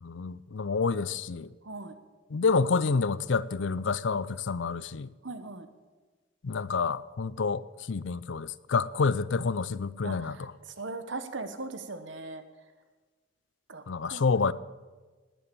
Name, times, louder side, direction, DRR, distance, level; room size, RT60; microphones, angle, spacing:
voice 1, 0.0-1.5 2.3-5.1 6.4-10.5 13.9-14.5, left 4 dB, 80° left, 0.5 m, -28 dB
voice 2, 1.6-2.0 5.2-5.7 10.0-12.4 13.7-14.5, right 3 dB, 85° right, 1.3 m, -39 dB
19.5 x 8.7 x 7.0 m
head